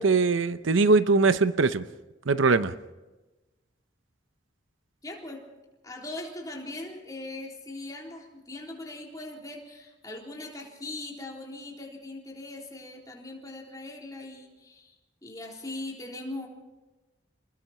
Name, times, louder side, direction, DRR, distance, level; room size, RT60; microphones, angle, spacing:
voice 1, 0.0-1.8 2.3-2.7, right 3 dB, 85° right, 13 dB, 0.8 m, -21 dB
voice 2, 5.0-5.4 5.8-15.0 15.2-16.5, left 2 dB, 20° left, -1 dB, 3.8 m, -40 dB
29.0 x 20.5 x 4.4 m, 1.1 s
head